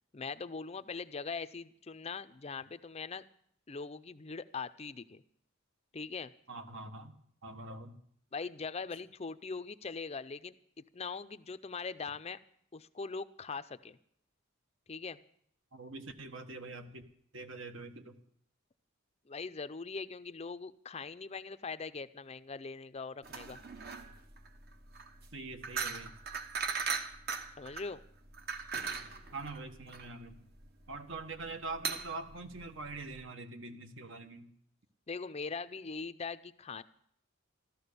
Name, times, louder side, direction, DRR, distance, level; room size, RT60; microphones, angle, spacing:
voice 1, 0.1-3.2 3.7-5.2 5.9-6.3 8.3-12.4 12.7-14.0 14.9-15.2 19.3-23.6 27.6-28.0 35.1-36.8, left 4 dB, 30° left, 13 dB, 0.5 m, -41 dB
voice 2, 6.5-8.0 15.7-17.0 17.3-18.2 25.3-26.1 29.3-30.4 30.9-34.5, right 3 dB, 70° right, 7 dB, 1.4 m, -44 dB
sound 1, 23.2-33.2, right 5 dB, 50° right, 1.1 m, -39 dB
14.5 x 13.0 x 6.8 m, 0.66 s
head